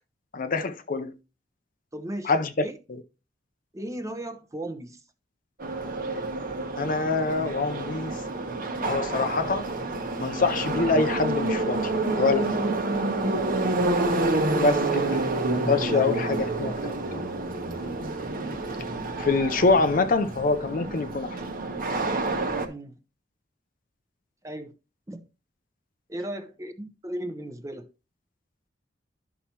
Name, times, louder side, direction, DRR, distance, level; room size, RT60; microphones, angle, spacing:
voice 1, 0.3-1.1 2.2-2.7 6.8-8.2 8.8-9.7 10.2-11.9 12.2-12.6 14.6-15.3 15.5-17.2 19.2-21.4, left 3 dB, 50° left, 0.6 m, -25 dB
voice 2, 1.9-2.3 2.6-2.8 3.7-5.0 15.9-16.0 22.7-23.0 24.4-24.8 25.1-25.2 26.1-27.9, right 1 dB, 20° right, 0.8 m, -36 dB
Subway metro underground, 5.6-22.7, right 2 dB, 50° right, 1.1 m, -28 dB
11.0 x 5.7 x 2.9 m
head